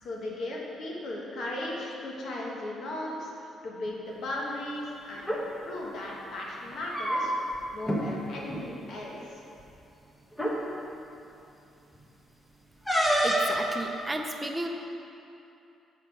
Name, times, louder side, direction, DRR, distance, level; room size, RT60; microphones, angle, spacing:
voice 1, 0.0-5.4 5.6-9.4, left 1 dB, 70° left, -3 dB, 1.5 m, -37 dB
sound 1, 5.1-5.4 6.7-7.6 7.8-8.0 8.4-8.6 9.6-9.7 10.3-10.6 12.9-13.6, equal, 15° left, 1.3 m, -26 dB
voice 2, 13.2-14.7, right 1 dB, 15° right, 3 dB, 0.7 m, -33 dB
7.7 x 5.1 x 4.8 m, 2.7 s
cardioid pair, 90°, 0 cm